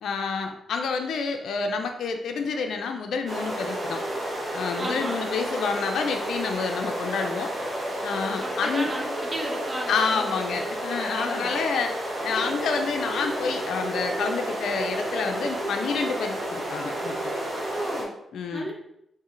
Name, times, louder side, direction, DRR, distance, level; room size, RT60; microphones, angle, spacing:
voice 1, 0.0-4.0 4.5-7.5 8.0-8.9 9.9-11.9 12.2-17.3 18.3-18.7, left 5 dB, 80° left, 4 dB, 0.4 m, -28 dB
sound 1, 3.3-18.0, right 1 dB, 50° right, 1.2 m, -31 dB
voice 2, 4.8-5.2 8.4-10.7 11.2-11.6 17.7-18.2 18.5-18.7, right 1 dB, 25° right, -1 dB, 0.8 m, -35 dB
3.6 x 2.7 x 3.1 m, 0.79 s
cardioid pair, 65°, 0 cm